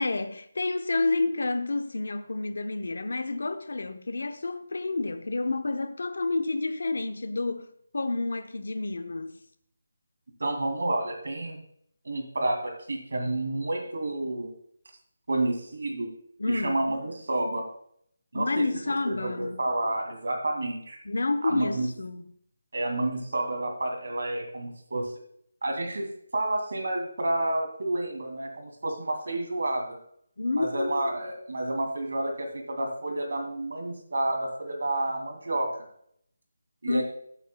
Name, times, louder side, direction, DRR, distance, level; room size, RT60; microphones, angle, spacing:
voice 1, 0.0-9.4 16.4-16.8 18.3-19.6 21.0-22.2 30.4-31.2 36.9-37.0, left 3 dB, 65° left, 0.8 m, -29 dB
voice 2, 10.4-11.6 12.0-14.5 15.3-16.1 16.5-17.6 18.3-18.6 19.1-21.0 21.4-21.9 22.7-25.1 25.6-30.0 30.5-35.7 36.8-37.0, right 1 dB, 65° right, 2.3 m, -30 dB
15.0 x 8.3 x 2.3 m
hypercardioid pair, 180°, 0 cm